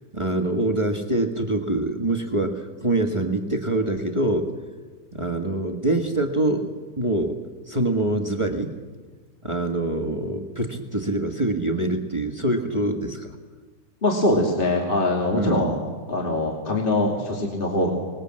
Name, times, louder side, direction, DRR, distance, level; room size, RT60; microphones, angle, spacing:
voice 1, 0.1-4.5 5.1-7.4 7.7-8.7 9.4-13.3 15.3-15.7, right 2 dB, 20° right, 3 dB, 1.6 m, -25 dB
voice 2, 14.0-15.8 16.1-17.9, left 1 dB, 30° left, 0 dB, 2.9 m, -23 dB
25.0 x 20.5 x 7.7 m, 1.4 s
omnidirectional pair, 1.8 m